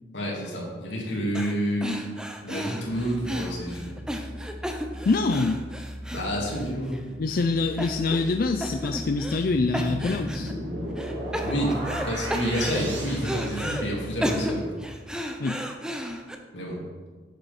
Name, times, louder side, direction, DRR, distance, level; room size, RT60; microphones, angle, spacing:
voice 1, 0.1-2.1 2.4-4.0 6.1-7.0 11.4-14.8 16.5-16.8, equal, 80° left, -3 dB, 2.9 m, -29 dB
sound 1, 1.3-1.5 1.8-7.0 7.3-7.4 7.8-8.3 8.6-9.5 9.7-10.5 11.0-12.0 12.3-13.8 14.2-16.3, equal, 5° right, 0.7 m, -33 dB
Musical instrument, 2.8-14.9, equal, 25° left, 3.4 m, -41 dB
voice 2, 5.1-5.6 7.2-10.5 15.4-15.6, left 3 dB, 50° left, 6 dB, 0.4 m, -25 dB
sound 2, 9.5-14.2, equal, 75° right, 2.1 m, -35 dB
11.0 x 7.9 x 4.3 m, 1.4 s
head